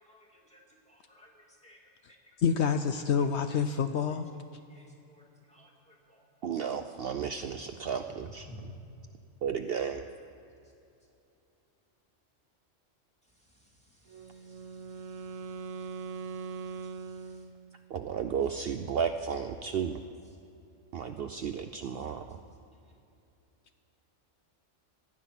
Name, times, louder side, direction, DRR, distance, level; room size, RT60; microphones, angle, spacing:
voice 1, 0.9-1.3 1.6-1.8 4.7-4.8 5.1-5.2 5.5-5.7 8.5-8.6 16.1-16.9, left 1 dB, 5° left, -1 dB, 2.3 m, -54 dB
voice 2, 2.4-4.3, left 6 dB, 70° left, 9 dB, 0.8 m, -27 dB
voice 3, 6.4-8.7 9.4-10.1 17.9-20.0 20.9-22.4, right 7 dB, 60° right, 7 dB, 0.7 m, -33 dB
Wind instrument woodwind instrument, 14.1-18.0, right 5 dB, 85° right, 1.0 m, -41 dB
17.0 x 11.0 x 5.9 m, 2.7 s
omnidirectional pair, 1.3 m